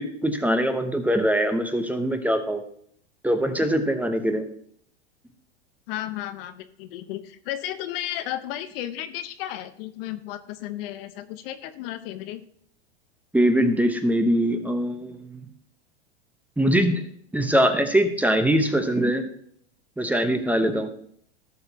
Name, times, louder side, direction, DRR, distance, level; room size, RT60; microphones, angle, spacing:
voice 1, 0.0-2.6 3.2-4.4 13.3-15.4 16.6-17.0 17.3-19.2 20.0-20.9, equal, 5° right, 6 dB, 1.0 m, -22 dB
voice 2, 5.9-12.4, left 12 dB, 60° left, 10 dB, 1.0 m, -34 dB
16.0 x 6.4 x 2.9 m, 0.65 s
hypercardioid pair, 115°, 33 cm